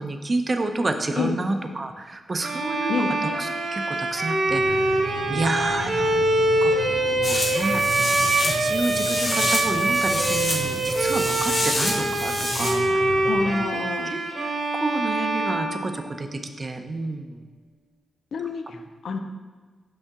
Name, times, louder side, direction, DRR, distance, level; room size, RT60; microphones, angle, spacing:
voice 1, 0.0-5.0 5.3-6.2 6.6-8.1 8.6-13.3 14.1-14.2 14.7-17.4, right 2 dB, 40° right, 6 dB, 0.7 m, -29 dB
Bowed string instrument, 2.4-16.5, right 2 dB, 60° right, 1.2 m, -24 dB
sound 1, 4.5-13.5, left 2 dB, 20° left, 1.4 m, -36 dB
sound 2, 7.2-12.7, left 2 dB, 55° left, 1.4 m, -28 dB
voice 2, 13.2-14.1 18.3-19.2, left 4 dB, 70° left, 6 dB, 0.6 m, -28 dB
5.7 x 5.4 x 3.7 m, 1.5 s
cardioid pair, 60°, 0 cm